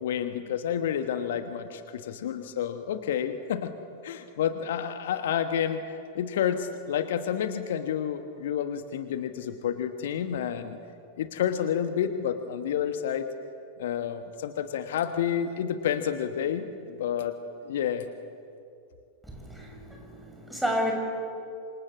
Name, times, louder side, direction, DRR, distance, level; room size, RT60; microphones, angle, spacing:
voice 1, 0.0-3.7 4.0-5.8 6.1-10.8 11.2-13.3 13.8-17.4 17.6-18.1, left 9 dB, 60° left, 8 dB, 1.3 m, -29 dB
voice 2, 19.3-20.9, equal, 5° right, 1 dB, 6.9 m, -31 dB
27.0 x 26.5 x 7.3 m, 2.5 s
figure-of-eight pair, 90°, 0 cm